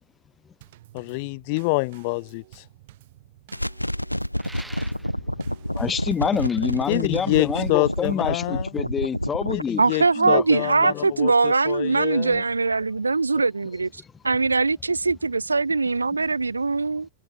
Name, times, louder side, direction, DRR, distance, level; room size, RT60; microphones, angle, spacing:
Drum kit / Snare drum / Bass drum, 0.6-8.3, right 16 dB, 55° right, 6.9 m, -52 dB
voice 1, 0.9-2.7 6.9-8.8 9.5-12.4, left 29 dB, 45° left, 0.6 m, -27 dB
sound 1, 3.5-9.6, equal, 90° left, 1.0 m, -28 dB
sound 2, 4.4-5.2 6.3-6.6, right 1 dB, 5° right, 2.8 m, -43 dB
voice 2, 5.8-9.8 10.2-10.4, left 6 dB, 20° left, 2.1 m, -27 dB
voice 3, 9.8-13.9 14.2-17.1, right 3 dB, 80° right, 0.4 m, -22 dB
figure-of-eight pair, 90°, 0 cm